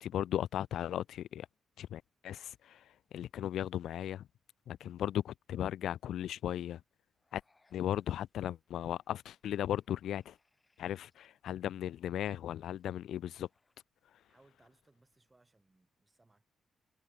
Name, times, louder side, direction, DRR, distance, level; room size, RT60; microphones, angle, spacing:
voice 1, 0.0-1.5 1.8-2.8 3.1-4.2 4.7-6.8 7.3-7.4 7.7-10.3 10.8-13.5, left 11 dB, 70° left, 0.4 m, -36 dB
sound 1, 7.1-13.8, left 3 dB, 15° left, 7.7 m, -78 dB
voice 2, 14.3-16.4, right 2 dB, 15° right, 5.2 m, -67 dB
wide cardioid pair, 175°, 0 cm